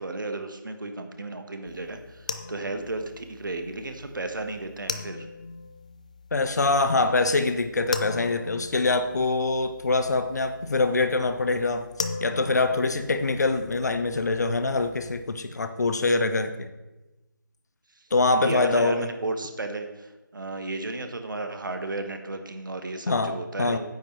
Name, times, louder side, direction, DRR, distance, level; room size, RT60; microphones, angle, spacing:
voice 1, 0.0-5.3 18.4-23.8, right 2 dB, 65° right, 6 dB, 1.5 m, -33 dB
sound 1, 1.7-15.2, left 3 dB, 20° left, 0.3 m, -40 dB
voice 2, 6.3-11.9 12.2-16.7 18.1-19.1 23.1-23.8, left 3 dB, 50° left, 9 dB, 0.9 m, -24 dB
9.3 x 8.7 x 4.6 m, 1.1 s
figure-of-eight pair, 160°, 12 cm